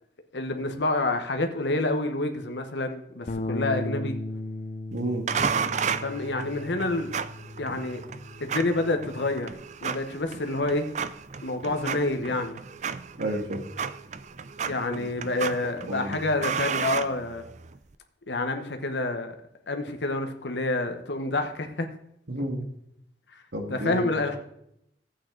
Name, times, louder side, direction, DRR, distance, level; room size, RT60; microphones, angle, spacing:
voice 1, 0.3-4.2 6.0-7.1 7.6-8.0 8.4-9.5 9.8-10.9 11.4-12.6 14.7-17.4 18.3-19.4 19.7-21.9 23.3-23.4 23.7-24.4, left 2 dB, 80° left, 6 dB, 1.1 m, -28 dB
Bass guitar, 3.3-9.5, left 2 dB, 40° left, 0.6 m, -36 dB
voice 2, 4.9-5.3 13.2-13.6 15.0-15.1 15.9-16.2 22.3-22.6 23.5-24.3, right 1 dB, 75° right, 3 dB, 1.9 m, -31 dB
sound 1, 5.3-17.8, right 6 dB, 40° right, 0.5 m, -33 dB
13.0 x 8.5 x 3.9 m, 0.77 s
head